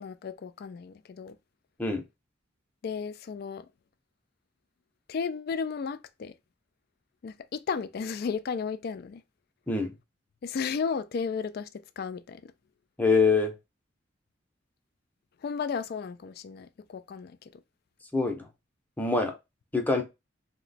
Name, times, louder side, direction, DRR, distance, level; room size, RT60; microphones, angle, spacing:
voice 1, 0.0-1.4 2.8-3.7 5.1-6.3 7.2-9.2 10.4-11.7 12.0-12.5 15.4-17.4, left 5 dB, 50° left, 0.3 m, -34 dB
voice 2, 13.0-13.5 18.1-18.5 19.0-19.3 19.7-20.0, left 4 dB, 10° left, 0.6 m, -24 dB
2.9 x 2.1 x 4.0 m
head